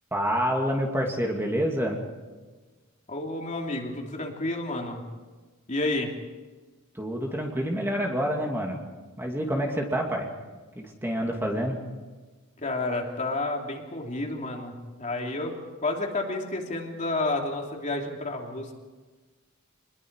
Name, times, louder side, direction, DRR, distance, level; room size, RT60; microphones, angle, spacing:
voice 1, 0.1-2.0 6.9-8.8 9.2-10.3 10.7-11.8, equal, 10° right, 1 dB, 2.4 m, -27 dB
voice 2, 3.1-5.0 5.7-6.1 12.6-15.5 15.8-18.7, left 2 dB, 35° left, 1 dB, 3.1 m, -30 dB
26.5 x 21.0 x 4.8 m, 1.3 s
head